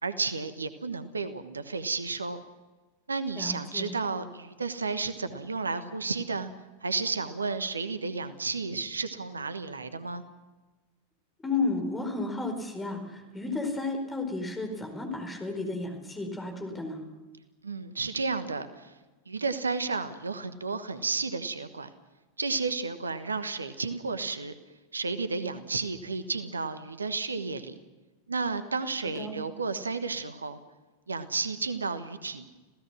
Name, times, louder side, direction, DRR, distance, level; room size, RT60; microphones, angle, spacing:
voice 1, 0.0-2.4 3.1-6.5 6.8-10.2 17.6-18.9 19.3-21.9 22.4-24.5 24.9-27.7 28.3-30.6 31.1-32.5, right 4 dB, 75° right, 11 dB, 1.3 m, -32 dB
voice 2, 3.3-3.9 11.4-17.0 29.2-29.3, left 3 dB, 10° left, 4 dB, 4.6 m, -32 dB
27.0 x 16.5 x 6.2 m, 1.2 s
figure-of-eight pair, 90°, 0 cm